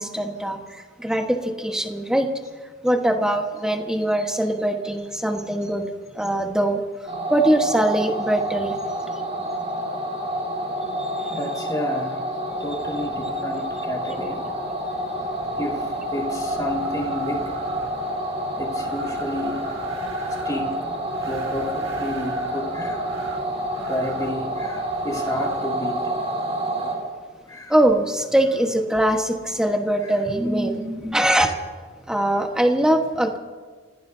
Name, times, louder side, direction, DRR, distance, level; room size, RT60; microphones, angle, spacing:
voice 1, 0.0-2.3 2.8-5.9 6.1-6.8 7.3-8.7 11.0-11.4 27.7-31.5 32.1-33.4, right 1 dB, 5° right, 1.3 m, -22 dB
sound 1, 7.1-27.0, right 1 dB, 35° right, 4.5 m, -28 dB
voice 2, 11.3-12.2 12.6-14.5 15.5-17.7 18.6-19.6 20.4-20.8 21.2-23.1 23.7-26.1 27.5-27.7 30.0-30.3, left 1 dB, 20° left, 2.3 m, -31 dB
Wind, 12.4-26.1, right 3 dB, 85° right, 1.8 m, -42 dB
29.5 x 17.0 x 2.8 m
head